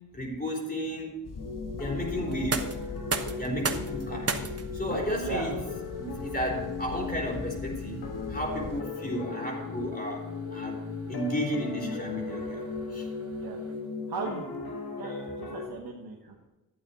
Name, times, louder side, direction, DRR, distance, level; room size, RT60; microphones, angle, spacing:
voice 1, 0.1-1.1 1.8-2.7 3.4-4.5 4.7-5.6 6.0-12.7 12.9-13.1, equal, 25° left, -1 dB, 3.6 m, -33 dB
sound 1, 1.2-8.8, left 5 dB, 60° left, 0.9 m, -41 dB
sound 2, 1.4-15.7, left 4 dB, 85° left, 1.8 m, -37 dB
sound 3, 2.2-14.0, right 4 dB, 40° right, 1.1 m, -40 dB
voice 2, 5.2-5.5 13.3-13.6 14.1-16.5, right 4 dB, 85° right, -1 dB, 1.3 m, -37 dB
12.0 x 8.4 x 4.2 m, 1.1 s
cardioid pair, 55°, 36 cm